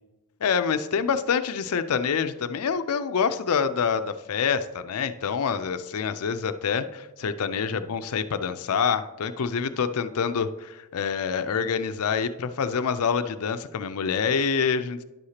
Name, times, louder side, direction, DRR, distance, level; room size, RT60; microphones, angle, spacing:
voice 1, 0.4-15.0, left 6 dB, 85° left, 11 dB, 0.5 m, -26 dB
10.5 x 6.5 x 2.9 m, 1.1 s
head